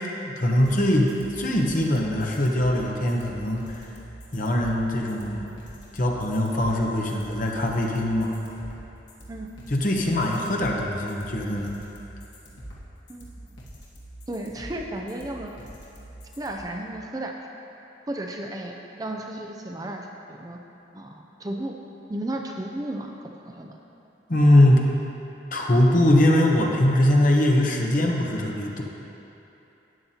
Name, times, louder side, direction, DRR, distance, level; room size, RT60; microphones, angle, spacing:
voice 1, 0.2-3.6 4.3-5.5 5.9-8.3 9.7-11.7 24.3-24.8 25.5-28.8, left 1 dB, 45° left, -1 dB, 1.0 m, -21 dB
sound 1, 0.6-16.6, right 1 dB, 70° left, 1.8 m, -44 dB
voice 2, 14.3-15.5 16.4-17.3 18.1-20.6 20.9-21.7 22.1-23.8, right 1 dB, 20° right, 2 dB, 0.5 m, -34 dB
12.5 x 9.4 x 2.8 m, 3.0 s
head